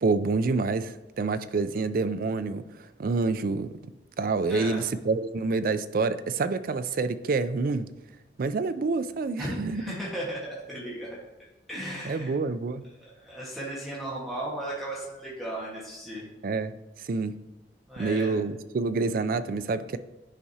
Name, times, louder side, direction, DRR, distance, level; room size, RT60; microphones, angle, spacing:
voice 1, 0.0-3.7 4.2-7.9 8.4-9.9 12.0-12.8 16.4-16.7 17.0-17.4 18.0-20.0, right 3 dB, 50° right, 12 dB, 0.4 m, -27 dB
voice 2, 4.5-4.8 9.4-11.2 11.7-12.3 13.0-16.3 17.9-18.4, right 1 dB, ahead, -7 dB, 1.4 m, -35 dB
10.0 x 4.7 x 2.8 m, 1.0 s
head